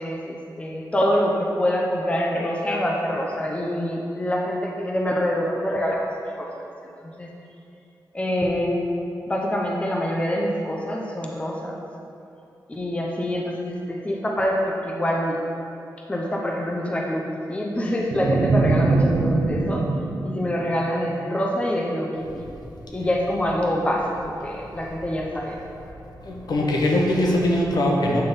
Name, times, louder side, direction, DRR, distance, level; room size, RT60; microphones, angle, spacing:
voice 1, 0.0-6.7 7.0-7.3 8.1-8.8 9.3-11.8 12.7-15.4 16.1-17.2 17.5-19.8 20.2-22.5 22.9-25.6, equal, 15° left, -1 dB, 0.7 m, -25 dB
sound 1, 18.1-21.4, right 3 dB, 65° right, 0.5 m, -23 dB
voice 2, 26.2-28.2, left 1 dB, 70° left, -1 dB, 1.0 m, -21 dB
8.8 x 3.6 x 5.4 m, 2.6 s
wide cardioid pair, 150°, 7 cm